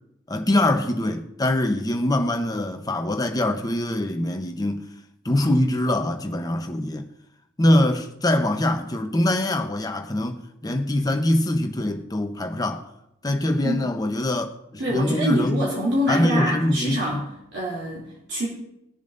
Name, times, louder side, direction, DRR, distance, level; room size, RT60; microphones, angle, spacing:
voice 1, 0.3-4.9 5.2-7.1 7.6-12.9 13.2-15.7 16.1-17.2, left 1 dB, 20° left, 0.8 m, -23 dB
voice 2, 14.8-17.2 17.5-18.5, equal, 60° right, 2.8 m, -25 dB
21.0 x 7.1 x 2.6 m
head